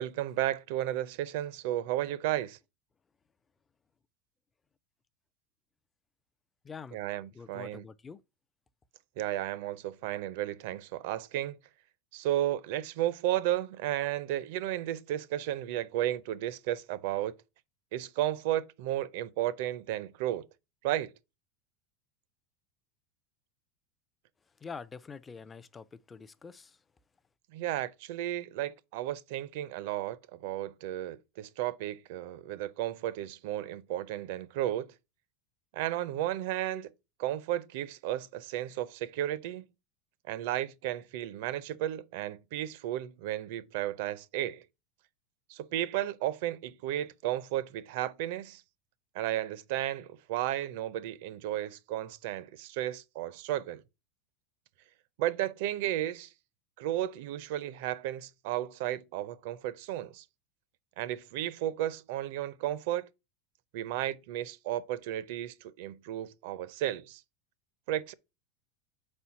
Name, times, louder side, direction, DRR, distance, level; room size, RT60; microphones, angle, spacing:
voice 1, 0.0-2.6 6.9-7.8 9.2-11.6 12.1-17.3 17.9-20.5 20.8-21.1 27.5-34.9 35.7-36.9 37.2-39.6 40.3-44.6 45.5-48.6 49.1-53.8 55.2-56.3 56.8-60.2 61.0-63.1 63.7-67.2 67.9-68.1, right 13 dB, 65° right, 0.5 m, -33 dB
voice 2, 6.6-7.0 7.3-8.2 24.6-26.8, left 5 dB, 15° left, 0.4 m, -45 dB
4.5 x 4.3 x 5.7 m
supercardioid pair, 150°, 0 cm